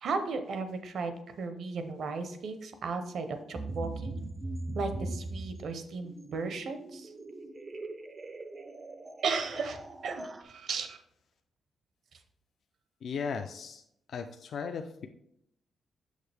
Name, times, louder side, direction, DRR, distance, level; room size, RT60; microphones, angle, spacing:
voice 1, 0.0-1.1 1.4-4.2 4.7-7.1 9.2-11.0, right 4 dB, 60° right, 8 dB, 0.7 m, -35 dB
sound 1, 3.5-10.4, right 2 dB, 25° right, 0.4 m, -40 dB
voice 2, 13.0-13.8 14.1-15.1, left 6 dB, 55° left, 6 dB, 0.4 m, -36 dB
6.5 x 6.3 x 3.4 m, 0.76 s
wide cardioid pair, 165°, 0 cm